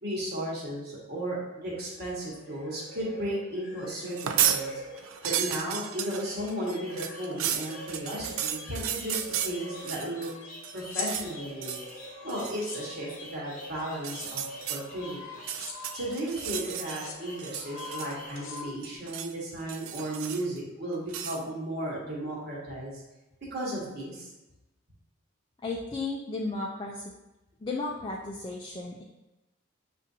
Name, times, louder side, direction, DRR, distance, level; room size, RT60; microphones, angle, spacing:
voice 1, 0.0-4.7 5.2-10.3 10.7-11.8 12.2-14.4 14.7-15.4 15.9-23.0 23.5-24.3, right 1 dB, 50° right, -5 dB, 1.3 m, -35 dB
sound 1, 1.7-18.6, left 1 dB, 40° left, 0.9 m, -44 dB
sound 2, 4.1-4.6 5.0-10.3 10.6-11.3 11.6-11.9 12.3-12.6 13.9-14.8 15.3-17.1 17.4-18.3 18.6-19.3 19.7-20.6 21.1-21.4, right 10 dB, 80° right, 0.3 m, -33 dB
sound 3, 10.8-11.1 12.5-12.8 14.0-14.3 15.5-15.8 16.9-17.2 18.4-19.0, left 5 dB, 75° left, 0.7 m, -38 dB
voice 2, 25.6-27.0 27.6-29.0, left 3 dB, 25° left, -2 dB, 0.3 m, -34 dB
6.6 x 2.5 x 2.7 m, 0.98 s
head